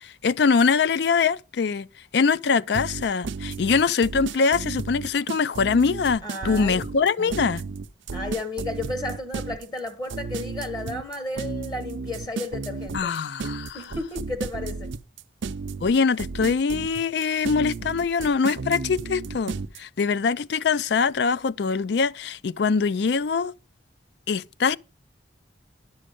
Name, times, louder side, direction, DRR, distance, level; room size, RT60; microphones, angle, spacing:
voice 1, 0.0-1.9 2.1-7.6 12.9-13.9 15.8-23.5 24.3-24.8, left 5 dB, 60° left, 0.4 m, -23 dB
sound 1, 2.7-19.8, right 4 dB, 80° right, 0.6 m, -33 dB
voice 2, 6.2-7.7 8.1-13.1 13.7-14.9, left 2 dB, 20° left, 1.0 m, -33 dB
11.0 x 6.4 x 5.1 m
head